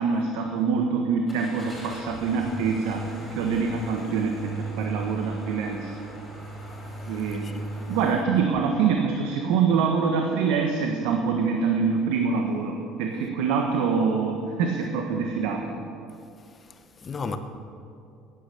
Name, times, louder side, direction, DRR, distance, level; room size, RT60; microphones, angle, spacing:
voice 1, 0.0-5.9 7.1-7.5 7.9-15.8, right 5 dB, 85° right, 1.4 m, -25 dB
Car / Engine starting, 1.3-8.1, right 1 dB, ahead, 3.9 m, -36 dB
voice 2, 16.6-17.4, left 5 dB, 25° left, 0.9 m, -34 dB
15.5 x 9.9 x 6.9 m
cardioid pair, 160°, 0 cm